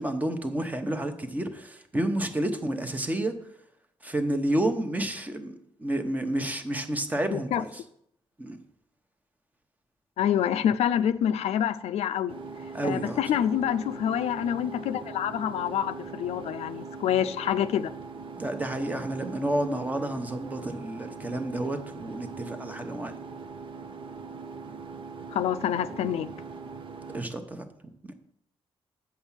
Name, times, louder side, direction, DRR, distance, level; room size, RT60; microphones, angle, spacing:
voice 1, 0.0-3.3 4.0-7.8 8.4-8.6 12.7-13.2 18.4-23.1 27.1-27.6 28.0-28.1, right 1 dB, 15° right, 1.0 m, -30 dB
voice 2, 7.3-7.6 10.2-12.3 12.8-17.9 25.3-26.3, left 10 dB, 85° left, 0.5 m, -27 dB
sound 1, 12.3-27.2, right 4 dB, 50° right, 0.8 m, -41 dB
7.1 x 5.3 x 7.3 m
cardioid pair, 120°, 11 cm